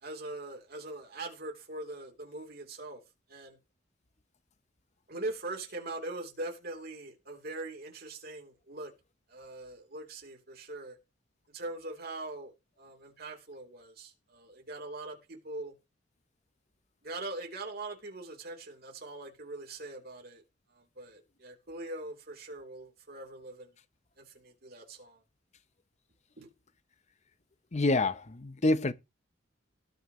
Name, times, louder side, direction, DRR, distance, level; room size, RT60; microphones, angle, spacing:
voice 1, 0.0-3.0 3.3-3.6 5.1-8.9 9.3-11.0 11.5-15.7 17.0-20.4 20.7-23.7 24.2-25.2 26.4-26.5, right 2 dB, 55° right, 3.5 m, -42 dB
voice 2, 27.7-28.9, left 2 dB, 35° left, 0.8 m, -27 dB
19.5 x 6.6 x 3.2 m
head